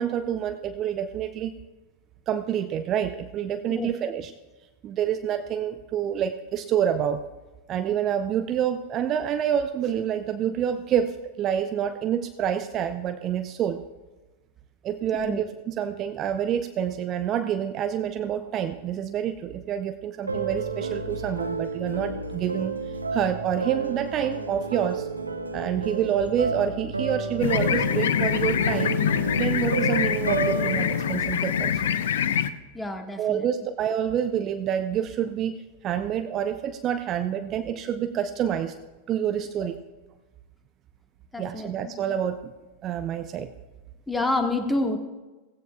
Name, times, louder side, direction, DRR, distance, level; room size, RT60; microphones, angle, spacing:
voice 1, 0.0-1.5 2.3-4.3 4.8-7.2 7.7-13.8 14.8-22.8 23.1-25.1 25.5-29.0 29.4-31.8 33.2-38.8 39.1-39.8 41.4-42.5 42.8-43.5, right 9 dB, 30° right, 9 dB, 0.5 m, -27 dB
sound 1, 20.3-32.4, right 3 dB, 80° right, 1.0 m, -31 dB
sound 2, 27.4-32.5, left 9 dB, 60° left, 0.5 m, -25 dB
voice 2, 32.7-33.5 41.3-41.9 44.1-45.0, left 2 dB, 10° left, 4 dB, 1.4 m, -28 dB
16.5 x 16.0 x 2.3 m, 1.2 s
figure-of-eight pair, 90°, 0 cm